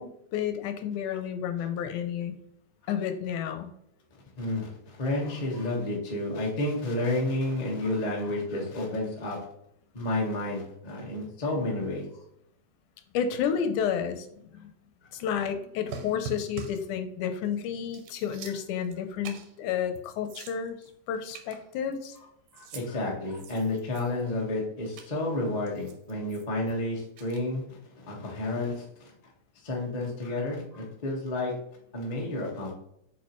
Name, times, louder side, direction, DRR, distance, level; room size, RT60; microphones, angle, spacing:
voice 1, 0.0-2.4 2.9-3.7 13.1-14.7 15.1-20.8 21.1-22.2, left 8 dB, 80° left, 8 dB, 2.1 m, -31 dB
voice 2, 4.4-9.5 9.9-12.0 22.5-28.8 29.6-31.5 31.9-32.7, left 2 dB, 60° left, -3 dB, 0.4 m, -31 dB
sound 1, 15.9-16.9 17.4-17.5 17.8-19.0 19.2-19.5 19.9-20.0 20.3-20.9 21.3-22.2 22.5-22.9 23.3-24.3 25.0-25.1 25.7-26.7 27.2-27.4, right 5 dB, 90° right, 2.5 m, -43 dB
7.2 x 4.7 x 3.1 m, 0.74 s
omnidirectional pair, 3.7 m